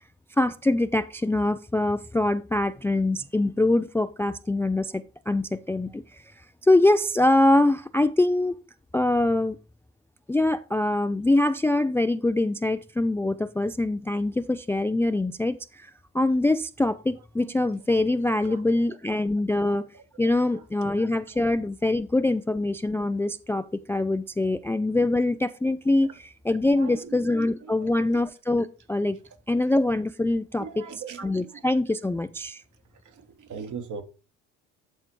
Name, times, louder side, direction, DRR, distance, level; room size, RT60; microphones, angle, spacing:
voice 1, 0.4-6.0 6.6-8.6 8.9-9.6 10.3-19.9 20.2-26.1 26.5-29.2 29.5-30.6 31.2-32.6, left 2 dB, 5° left, 0.4 m, -24 dB
voice 2, 18.0-18.6 19.5-20.6 21.3-21.4 26.0-26.2 26.7-27.3 27.6-28.2 30.5-31.7 33.0-34.0, right 6 dB, 55° right, 1.6 m, -42 dB
11.5 x 4.4 x 4.6 m
hypercardioid pair, 65°, 37 cm